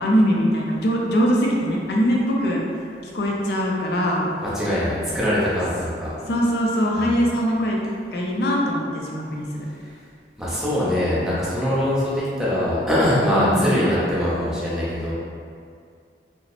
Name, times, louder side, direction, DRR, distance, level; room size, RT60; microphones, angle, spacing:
voice 1, 0.0-2.6 3.0-4.3 6.3-7.8 8.1-9.7 13.3-13.8, equal, 65° left, -2 dB, 0.4 m, -22 dB
voice 2, 4.4-6.1 7.0-7.1 10.4-15.1, equal, ahead, -10 dB, 0.6 m, -22 dB
2.8 x 2.0 x 2.9 m, 2.3 s
head